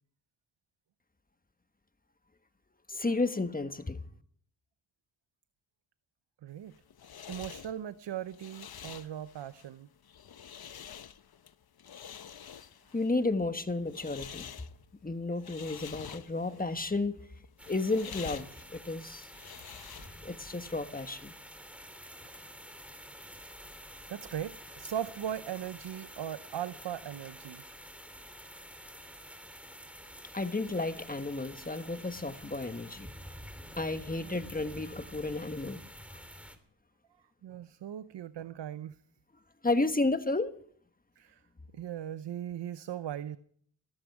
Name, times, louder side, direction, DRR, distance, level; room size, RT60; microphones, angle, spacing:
voice 1, 2.9-4.0 12.9-14.5 15.0-17.2 17.7-19.3 20.2-21.3 30.3-33.1 33.8-35.8 39.6-40.5, left 2 dB, 20° left, 1.4 m, -32 dB
voice 2, 6.4-6.7 7.3-9.9 22.2-22.4 24.1-27.6 34.1-34.4 37.4-39.0 41.2-41.4 41.7-43.4, right 10 dB, 70° right, 0.8 m, -39 dB
sound 1, 6.5-20.4, left 8 dB, 55° left, 1.0 m, -48 dB
sound 2, 17.6-36.6, equal, 5° right, 3.1 m, -49 dB
20.5 x 13.5 x 4.9 m
cardioid pair, 65°, 44 cm